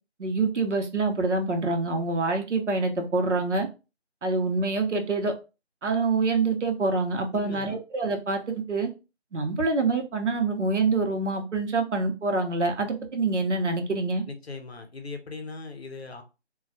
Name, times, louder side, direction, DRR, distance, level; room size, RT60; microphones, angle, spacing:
voice 1, 0.2-3.7 4.2-5.3 5.8-8.9 9.3-14.2, right 3 dB, 80° right, 4 dB, 0.7 m, -26 dB
voice 2, 7.3-7.8 14.3-16.2, left 3 dB, 60° left, 6 dB, 0.6 m, -39 dB
2.2 x 2.1 x 2.6 m, 0.30 s
figure-of-eight pair, 175°, 35 cm